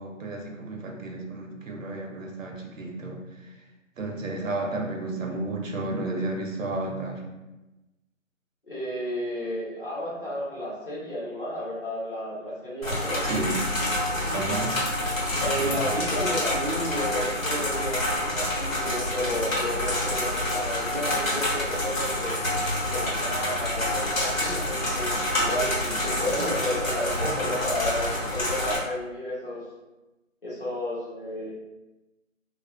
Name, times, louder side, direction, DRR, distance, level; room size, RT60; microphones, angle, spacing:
voice 1, 0.0-3.2 4.0-7.2 13.2-13.6 14.3-14.7, right 2 dB, 75° right, 1 dB, 0.7 m, -32 dB
voice 2, 8.6-13.2 14.2-14.5 15.4-22.4 22.9-29.6 30.4-31.5, left 1 dB, 40° left, -9 dB, 1.0 m, -32 dB
sound 1, 12.8-28.8, left 1 dB, 85° left, 1.1 m, -27 dB
2.4 x 2.0 x 2.5 m, 1.0 s
figure-of-eight pair, 175°, 40 cm